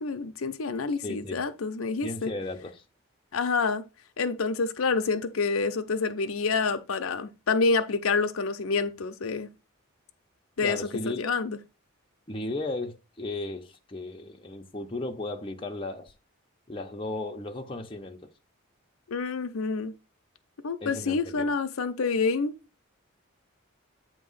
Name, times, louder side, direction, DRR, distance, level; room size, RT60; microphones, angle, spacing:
voice 1, 0.0-2.3 3.3-3.8 4.2-9.5 10.6-11.6 19.1-19.9 20.6-22.5, left 4 dB, 80° left, 0.6 m, -28 dB
voice 2, 1.0-1.4 2.0-2.8 10.6-11.3 12.3-16.1 16.7-18.3 20.8-21.5, left 2 dB, 25° left, 0.8 m, -35 dB
8.4 x 3.0 x 5.5 m
head